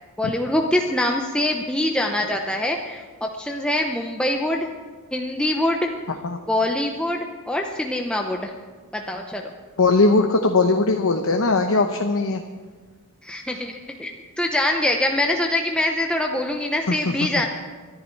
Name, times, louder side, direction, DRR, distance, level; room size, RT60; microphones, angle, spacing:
voice 1, 0.2-4.7 5.1-5.9 6.5-8.5 8.9-9.5 13.2-17.5, left 1 dB, 5° left, 1 dB, 0.7 m, -24 dB
voice 2, 9.8-12.4 17.0-17.1, left 3 dB, 65° left, 4 dB, 0.9 m, -19 dB
23.5 x 11.0 x 4.6 m, 1.5 s
head